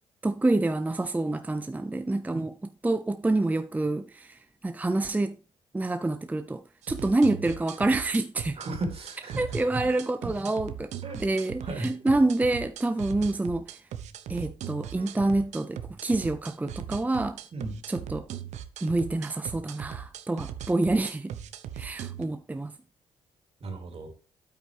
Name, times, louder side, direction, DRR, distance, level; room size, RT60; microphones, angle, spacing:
voice 1, 0.2-2.6 2.8-5.4 5.7-8.6 9.4-10.9 11.2-13.8 14.3-17.4 17.9-18.3 18.8-21.3 21.7-22.8, right 2 dB, 15° right, 0.5 m, -27 dB
sound 1, 6.8-22.2, right 9 dB, 80° right, 0.8 m, -39 dB
voice 2, 8.6-9.9 11.0-11.2 11.6-11.9 17.5-17.8 23.6-24.1, right 2 dB, 55° right, 2.9 m, -35 dB
9.3 x 8.4 x 3.3 m
supercardioid pair, 55°, 12 cm